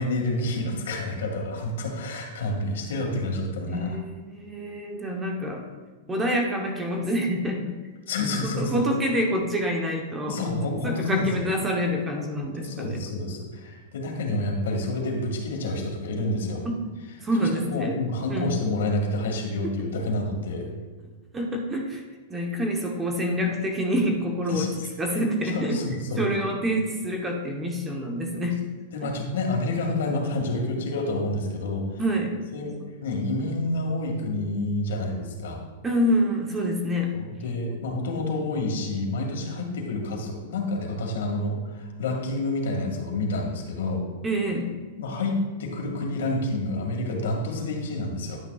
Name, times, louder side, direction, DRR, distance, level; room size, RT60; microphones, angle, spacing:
voice 1, 0.0-4.0 8.1-8.8 10.3-11.5 12.2-12.3 12.6-16.6 17.4-20.7 24.5-24.9 25.5-26.2 28.9-32.0 32.5-35.6 37.1-44.0 45.0-48.4, left 2 dB, 80° left, 1 dB, 2.0 m, -28 dB
voice 2, 3.7-5.6 6.1-7.8 8.4-10.4 10.8-13.0 16.6-16.8 17.2-18.0 18.3-18.6 21.3-22.0 22.3-24.7 25.0-25.8 26.2-28.7 32.0-32.3 35.8-37.2 44.2-44.7, equal, 10° right, 2 dB, 1.0 m, -27 dB
10.5 x 9.0 x 2.4 m, 1.3 s
supercardioid pair, 150°, 0 cm